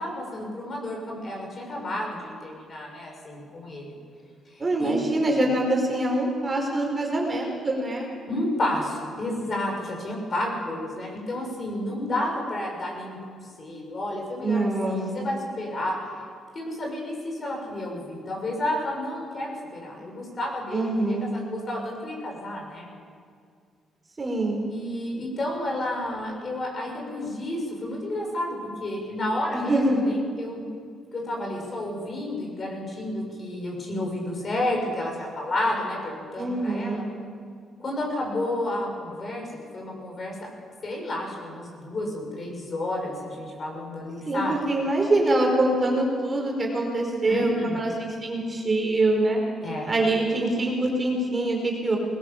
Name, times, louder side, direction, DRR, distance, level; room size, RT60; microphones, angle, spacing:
voice 1, 0.0-4.0 4.5-5.0 8.3-16.0 16.5-22.9 24.7-30.7 31.1-37.0 37.8-40.5 40.8-44.7 47.2-47.8 49.6-49.9, left 1 dB, 40° left, 0 dB, 7.2 m, -31 dB
voice 2, 4.6-8.1 14.4-15.3 20.7-21.3 24.2-24.6 29.5-30.0 36.4-37.0 44.3-49.4 49.9-52.0, right 2 dB, 30° right, 0 dB, 4.9 m, -24 dB
20.5 x 17.5 x 7.3 m, 2.2 s
cardioid pair, 90°, 0 cm